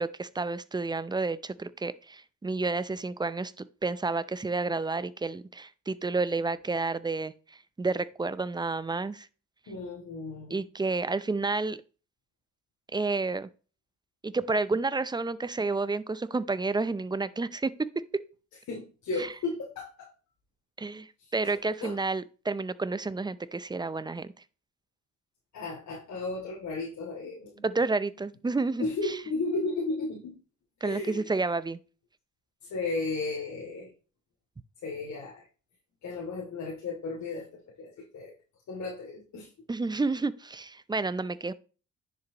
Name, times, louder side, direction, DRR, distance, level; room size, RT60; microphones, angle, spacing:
voice 1, 0.0-9.3 10.5-11.8 12.9-13.5 14.2-17.7 18.1-18.2 19.2-19.3 20.8-24.3 27.6-29.2 30.8-31.8 39.7-41.5, right 3 dB, 15° right, 0.6 m, -30 dB
voice 2, 9.7-10.6 18.7-20.1 21.2-21.9 25.5-27.6 28.8-30.4 30.8-31.3 32.6-33.9 34.8-35.4 36.0-38.3 38.7-39.5, left 3 dB, 65° left, 2.7 m, -34 dB
10.0 x 6.8 x 3.0 m
cardioid pair, 90°, 30 cm